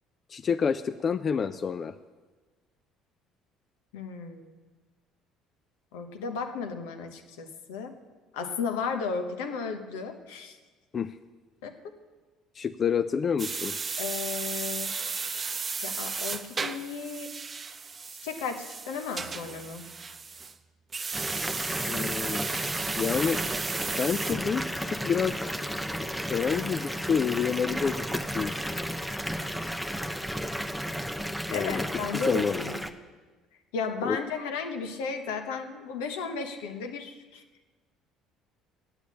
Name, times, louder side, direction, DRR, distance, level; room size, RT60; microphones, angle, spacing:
voice 1, 0.3-1.9 10.9-11.1 12.6-13.7 21.9-22.4 23.0-23.4 24.0-25.5 26.0-28.6 31.5-31.8 32.1-32.6 34.0-34.2, left 6 dB, 40° left, 12 dB, 0.4 m, -28 dB
voice 2, 3.9-4.5 5.9-8.0 8.3-10.6 11.6-12.0 14.0-15.0 15.8-17.3 18.2-19.8 31.5-32.8 33.7-37.4, left 5 dB, 85° left, 6 dB, 1.0 m, -34 dB
sound 1, 13.4-20.5 20.9-24.3, right 5 dB, 35° right, 0.7 m, -34 dB
Water tap faucet / Bathtub (filling or washing) / Fill (with liquid), 21.1-32.9, equal, ahead, 0.7 m, -33 dB
8.2 x 7.9 x 8.5 m, 1.3 s
hypercardioid pair, 70°, 0 cm